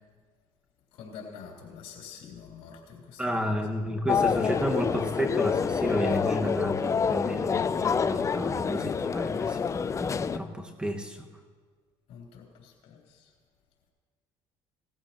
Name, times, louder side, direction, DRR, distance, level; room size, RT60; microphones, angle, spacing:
voice 1, 0.9-3.2 12.1-13.3, left 6 dB, 70° left, -2 dB, 3.5 m, -46 dB
voice 2, 3.2-11.3, equal, 10° right, 2 dB, 1.6 m, -32 dB
sound 1, 4.1-10.4, left 6 dB, 30° left, 0.5 m, -27 dB
18.5 x 14.5 x 3.0 m, 1.5 s
supercardioid pair, 80°, 11 cm